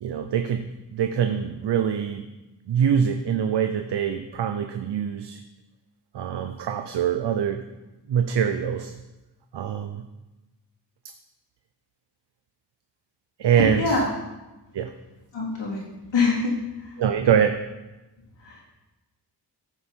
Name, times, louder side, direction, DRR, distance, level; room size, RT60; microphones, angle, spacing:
voice 1, 0.0-2.2 2.7-5.4 6.1-7.7 8.1-8.9 9.5-10.0 13.4-14.0 14.7-15.0 17.0-17.6, right 8 dB, 75° right, 7 dB, 0.7 m, -24 dB
voice 2, 13.6-14.1 15.3-15.8 16.1-17.0 18.4-18.6, left 3 dB, 85° left, -5 dB, 3.7 m, -25 dB
14.0 x 8.6 x 4.6 m, 1.1 s
wide cardioid pair, 145°, 41 cm